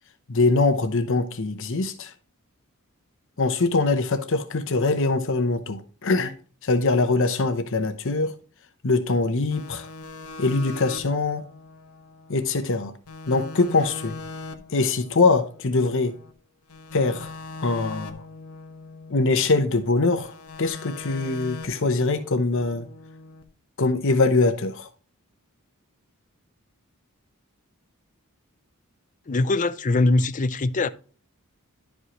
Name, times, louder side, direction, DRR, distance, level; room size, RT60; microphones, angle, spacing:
voice 1, 0.3-2.1 3.4-6.3 6.6-8.3 8.8-9.9 10.4-11.4 12.3-12.9 13.3-14.2 14.7-16.2 16.9-17.3 17.6-18.2 19.1-22.9 23.8-24.9, left 3 dB, 60° left, 0.8 m, -23 dB
sound 1, 9.5-12.8 13.1-16.3 16.7-19.9 20.2-23.4, left 3 dB, 85° left, 1.0 m, -41 dB
voice 2, 29.3-30.9, left 2 dB, 35° left, 0.5 m, -22 dB
11.0 x 5.4 x 3.0 m
head